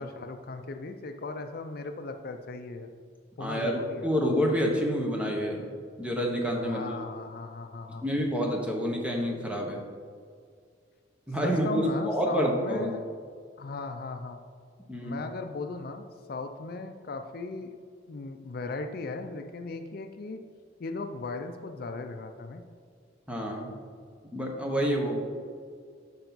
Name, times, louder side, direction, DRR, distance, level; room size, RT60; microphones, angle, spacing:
voice 1, 0.0-2.9 3.4-4.1 6.6-8.0 11.4-13.0 13.6-14.4 15.0-17.8 18.1-20.4 20.8-22.6, left 3 dB, 55° left, 6 dB, 0.4 m, -37 dB
voice 2, 3.4-5.6 6.0-7.0 8.0-9.8 11.3-12.9 14.9-15.2 23.3-23.7 24.3-25.2, equal, 5° right, 0 dB, 1.0 m, -28 dB
8.9 x 5.6 x 4.0 m, 2.1 s
head